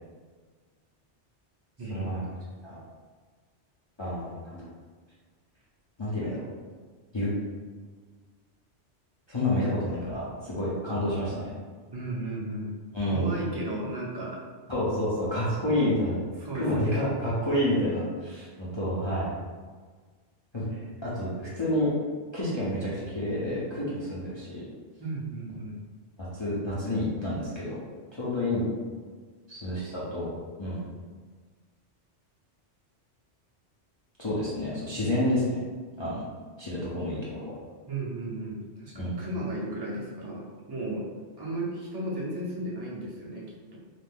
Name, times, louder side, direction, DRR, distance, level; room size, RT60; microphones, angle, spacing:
voice 1, 1.8-2.2 11.9-12.7 13.1-14.4 16.4-17.0 20.7-20.9 25.0-25.8 37.9-40.4 40.7-41.0 41.4-43.5, right 1 dB, 30° right, -6 dB, 0.5 m, -34 dB
voice 2, 4.0-4.7 6.0-6.4 7.1-7.3 9.3-11.5 12.9-13.3 14.7-16.2 16.5-19.3 20.5-20.7 21.0-21.9 22.3-24.7 26.2-27.8 28.1-28.7 29.5-30.3 30.6-30.8 34.2-35.6 36.0-36.2 36.6-37.5 38.9-39.2, left 1 dB, 35° left, -9 dB, 0.5 m, -29 dB
2.5 x 2.5 x 3.5 m, 1.5 s
omnidirectional pair, 1.2 m